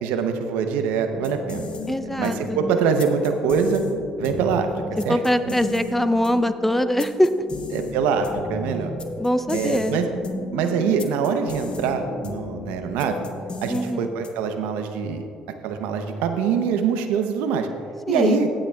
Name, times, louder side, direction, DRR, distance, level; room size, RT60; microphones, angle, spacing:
voice 1, 0.0-1.7 2.1-3.8 4.2-4.7 5.0-5.5 7.7-8.9 9.5-10.1 10.5-13.2 13.6-15.3 15.6-17.7 18.1-18.5, right 6 dB, 80° right, 6 dB, 0.7 m, -24 dB
sound 1, 1.1-14.6, left 2 dB, 35° left, 1.0 m, -34 dB
voice 2, 1.9-2.6 5.1-7.3 9.2-10.0 13.7-14.1 18.1-18.4, left 1 dB, 5° left, 11 dB, 0.5 m, -22 dB
16.0 x 8.8 x 2.3 m, 2.4 s
supercardioid pair, 65°, 3 cm